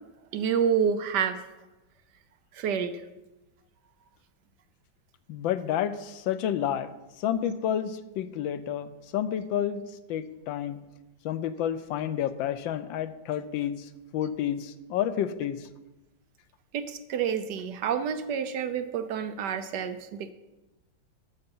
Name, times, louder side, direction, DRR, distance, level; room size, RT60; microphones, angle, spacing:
voice 1, 0.3-1.4 2.5-3.0 16.7-20.3, right 7 dB, 70° right, 10 dB, 1.2 m, -28 dB
voice 2, 5.3-6.9 7.2-9.8 10.1-10.8 11.2-15.7, left 10 dB, 90° left, 12 dB, 1.4 m, -30 dB
13.0 x 6.7 x 5.4 m, 1.0 s
omnidirectional pair, 2.0 m